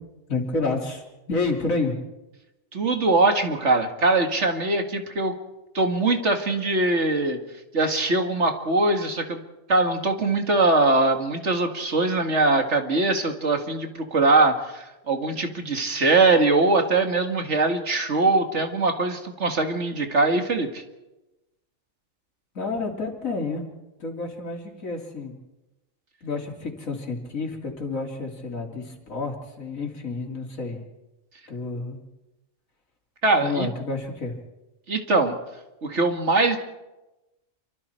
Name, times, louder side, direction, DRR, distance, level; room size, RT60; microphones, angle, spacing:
voice 1, 0.3-1.9 22.5-23.7 24.0-25.4 26.2-30.8 31.5-32.0 33.4-34.3, left 3 dB, 80° left, 2 dB, 3.4 m, -29 dB
voice 2, 2.7-5.3 5.7-7.4 7.7-9.4 9.7-20.8 33.2-33.7 34.9-35.4 35.8-36.6, right 3 dB, 60° right, 5 dB, 2.3 m, -22 dB
28.0 x 24.5 x 4.5 m, 1.0 s
omnidirectional pair, 1.4 m